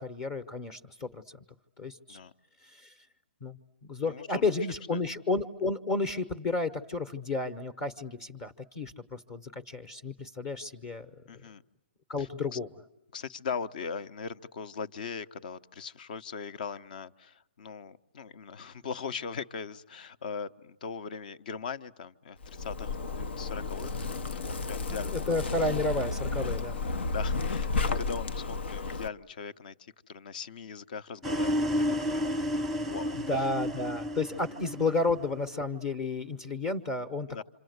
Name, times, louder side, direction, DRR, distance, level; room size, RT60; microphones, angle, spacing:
voice 1, 0.0-1.4 1.8-2.2 2.6-2.9 3.4-3.6 3.9-11.1 12.1-12.7 24.9-26.8 33.3-37.4, left 3 dB, 25° left, 10 dB, 1.1 m, -32 dB
voice 2, 4.1-4.4 4.9-5.0 11.3-11.6 12.2-12.6 13.1-25.3 27.1-31.8 32.1-33.5 37.3-37.4, left 6 dB, 50° left, 14 dB, 0.9 m, -40 dB
Zipper (clothing), 22.4-29.1, left 3 dB, 75° left, 1.1 m, -32 dB
sound 1, 31.2-35.4, equal, ahead, 1.0 m, -31 dB
27.5 x 27.0 x 8.0 m, 0.86 s
hypercardioid pair, 155°, 6 cm